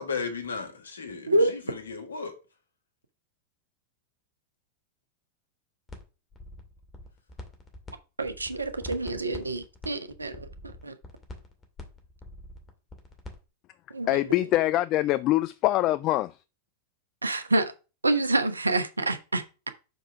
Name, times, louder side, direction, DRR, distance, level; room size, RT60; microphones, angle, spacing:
voice 1, 0.0-2.3, left 5 dB, 70° left, 1.8 m, -35 dB
sound 1, 5.9-6.0 6.3-7.9 8.2-13.4, left 1 dB, 15° left, 2.3 m, -44 dB
voice 2, 8.2-10.9 13.9-14.2 17.2-17.7 18.0-19.7, right 2 dB, 80° right, 0.9 m, -27 dB
voice 3, 14.1-16.4, left 15 dB, 35° left, 0.3 m, -24 dB
5.4 x 5.4 x 5.6 m
figure-of-eight pair, 90°, 0 cm